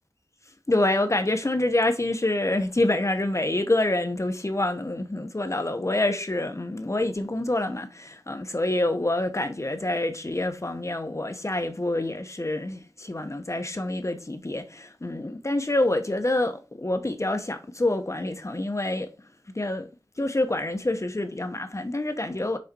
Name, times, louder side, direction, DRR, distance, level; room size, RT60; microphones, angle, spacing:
voice 1, 0.7-19.1 19.5-19.9 20.2-22.6, left 2 dB, 40° left, 1.1 m, -27 dB
6.4 x 4.3 x 4.4 m
wide cardioid pair, 45°, 8 cm